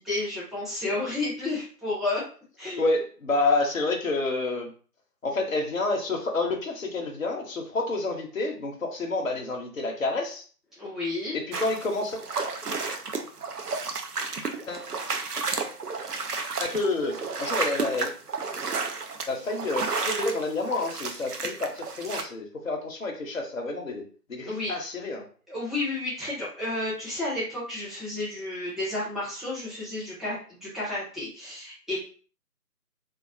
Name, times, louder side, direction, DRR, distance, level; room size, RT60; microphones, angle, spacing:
voice 1, 0.0-2.2 2.6-2.9 10.8-11.4 24.5-24.7 25.5-32.0, left 2 dB, ahead, -10 dB, 0.6 m, -31 dB
voice 2, 2.8-4.7 5.2-10.4 11.3-12.2 14.7-14.9 15.6-15.7 16.6-18.1 19.3-25.3, left 2 dB, 55° left, 1 dB, 0.6 m, -29 dB
sound 1, 11.5-22.2, right 4 dB, 70° right, 0.6 m, -32 dB
2.4 x 2.2 x 2.4 m, 0.41 s
figure-of-eight pair, 170°, 49 cm